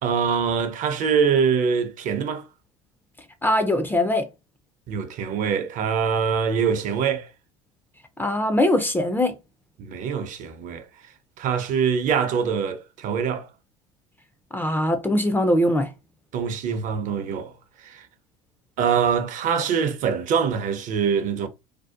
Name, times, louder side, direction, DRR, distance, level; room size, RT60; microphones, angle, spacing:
voice 1, 0.0-2.4 4.9-7.3 9.8-10.9 11.4-13.5 16.3-17.5 17.8-18.0 18.8-21.5, right 6 dB, 45° right, 0.5 m, -24 dB
voice 2, 3.4-4.3 8.2-9.4 14.5-15.9, left 1 dB, 10° left, 0.3 m, -21 dB
2.6 x 2.1 x 2.4 m
hypercardioid pair, 85°, 18 cm